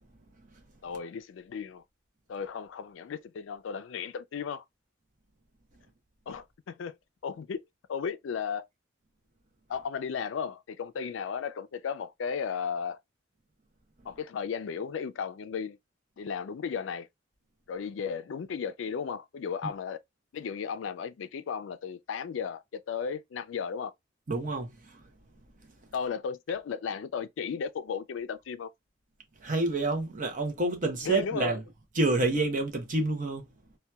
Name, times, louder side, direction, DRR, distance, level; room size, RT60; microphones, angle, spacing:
voice 1, 0.8-1.8 2.3-4.6 6.3-7.0 7.2-7.6 7.9-8.7 9.7-13.0 14.1-15.8 16.2-17.1 17.7-20.0 20.3-23.9 25.9-28.7 31.0-31.5, left 6 dB, 75° left, 0.4 m, -35 dB
voice 2, 24.3-25.0 29.4-31.6 32.0-33.5, right 2 dB, 40° right, 0.7 m, -28 dB
2.7 x 2.2 x 2.2 m
head